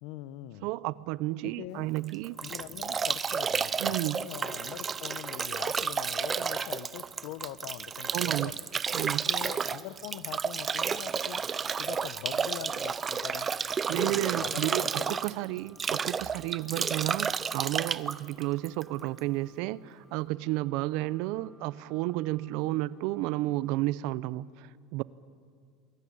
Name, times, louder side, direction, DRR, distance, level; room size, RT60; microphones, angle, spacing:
voice 1, 0.0-0.7 1.4-1.9 2.4-8.6 9.2-11.4 11.8-13.5 13.9-15.2, left 14 dB, 70° left, 1.0 m, -43 dB
voice 2, 0.6-2.4 3.8-4.2 8.1-8.5 8.9-9.2 13.9-25.0, right 18 dB, 65° right, 0.7 m, -32 dB
Bathtub (filling or washing) / Drip / Trickle dribble, 2.0-19.2, right 6 dB, 25° right, 0.7 m, -31 dB
sound 1, 11.8-23.7, left 2 dB, 45° left, 7.2 m, -60 dB
27.5 x 21.5 x 8.6 m
supercardioid pair, 130°, 0 cm